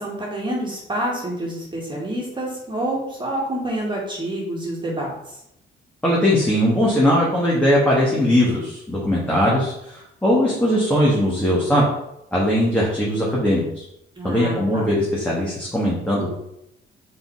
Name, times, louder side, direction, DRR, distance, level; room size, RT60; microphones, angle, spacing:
voice 1, 0.0-5.4 14.2-14.9, right 1 dB, 25° right, -3 dB, 2.1 m, -28 dB
voice 2, 6.0-11.9 12.3-13.8 14.2-16.3, equal, 5° left, -6 dB, 1.6 m, -20 dB
5.1 x 4.0 x 4.7 m, 0.82 s
cardioid pair, 90°, 20 cm